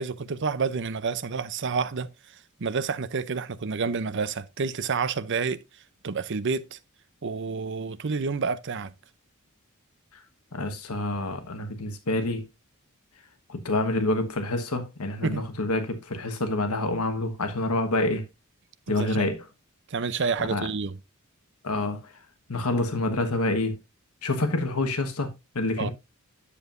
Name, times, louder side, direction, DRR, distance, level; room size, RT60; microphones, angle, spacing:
voice 1, 0.0-2.1 2.6-5.6 6.0-6.8 7.2-8.9 15.2-15.4 18.9-19.3 19.9-20.9 25.8-25.9, right 5 dB, 55° right, 0.6 m, -29 dB
voice 2, 10.5-12.4 13.5-18.2 18.9-19.4 20.5-20.7 21.6-22.1 22.5-23.8 24.2-25.9, left 2 dB, 90° left, 1.3 m, -27 dB
10.0 x 7.2 x 2.6 m
head